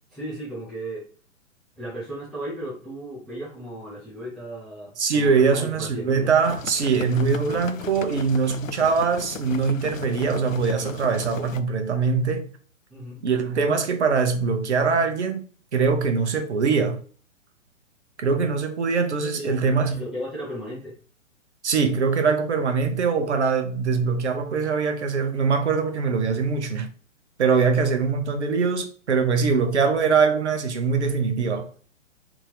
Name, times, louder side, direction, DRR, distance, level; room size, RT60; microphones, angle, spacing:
voice 1, 0.1-1.1 1.8-6.3 12.9-13.3 19.3-20.9 27.6-27.7, right 1 dB, ahead, 0.4 m, -35 dB
voice 2, 5.0-12.5 13.2-15.4 15.7-17.0 18.2-20.0 21.6-26.9 27.4-31.7, right 5 dB, 60° right, 0.9 m, -22 dB
sound 1, 6.4-11.6, left 7 dB, 80° left, 0.5 m, -37 dB
3.7 x 2.8 x 4.8 m
figure-of-eight pair, 125°, 39 cm